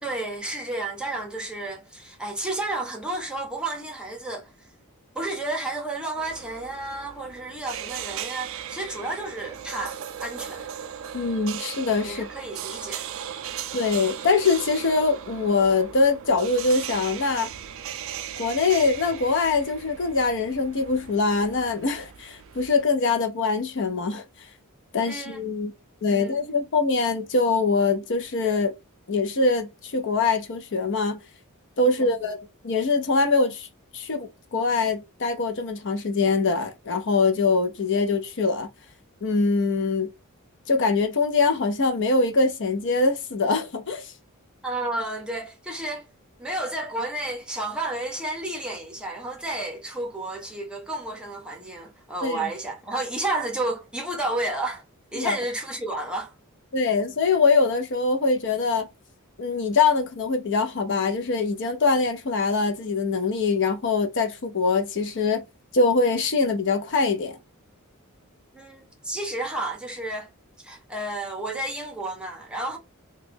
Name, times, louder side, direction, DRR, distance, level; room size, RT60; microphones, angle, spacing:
voice 1, 0.0-4.5 5.1-10.7 12.1-13.1 25.0-25.4 26.1-26.4 44.6-46.1 46.4-54.8 55.1-56.3 68.5-70.3 70.6-72.8, right 2 dB, 5° right, 0.7 m, -31 dB
sound 1, 6.2-22.8, right 9 dB, 60° right, 0.4 m, -38 dB
voice 2, 11.1-12.3 13.7-17.5 18.4-24.2 24.9-25.7 26.0-28.7 29.1-31.2 31.8-32.4 32.6-33.7 33.9-38.7 39.2-40.1 40.7-44.1 52.2-52.5 55.2-55.4 56.7-58.9 59.4-65.5 65.7-67.4, left 4 dB, 55° left, 0.5 m, -23 dB
3.0 x 2.2 x 3.4 m
head